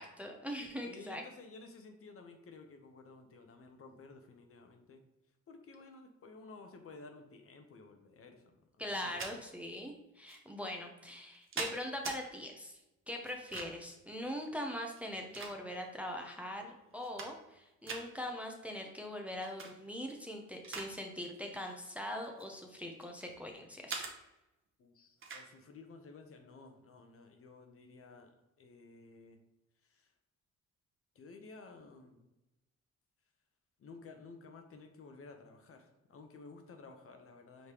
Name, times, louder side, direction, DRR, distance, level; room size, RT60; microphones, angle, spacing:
voice 1, 0.0-1.2 8.8-12.8 13.1-24.0, left 1 dB, 5° right, 2 dB, 0.6 m, -42 dB
voice 2, 0.8-5.0 5.5-9.3 24.8-29.4 29.8-30.1 31.1-32.3 33.8-37.7, left 3 dB, 50° left, 5 dB, 0.8 m, -54 dB
sound 1, 8.9-9.3 10.3-10.4 11.1-12.2 13.3-13.9 14.9-15.9 16.5-16.6 16.9-17.6 17.9-18.1 19.4-19.7 20.1-20.9 21.2-21.5 22.2-23.3 23.9-24.1 25.2-25.5, right 4 dB, 45° right, 0.9 m, -43 dB
5.0 x 3.2 x 2.9 m, 0.96 s
cardioid pair, 90°, 30 cm